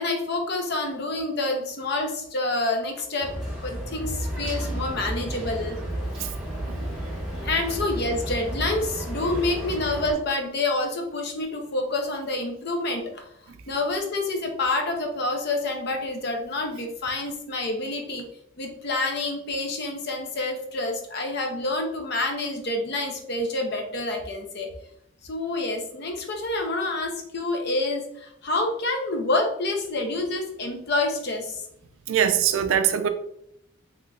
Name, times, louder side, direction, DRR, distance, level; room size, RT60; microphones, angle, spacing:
voice 1, 0.0-3.3 3.6-5.8 7.4-13.3 13.7-18.2 18.6-24.7 25.2-31.6, left 2 dB, 50° left, 0.5 m, -28 dB
sound 1, 3.2-10.1, right 1 dB, 5° right, 1.1 m, -32 dB
voice 2, 32.1-33.1, right 9 dB, 70° right, 0.3 m, -22 dB
3.8 x 3.0 x 2.3 m
head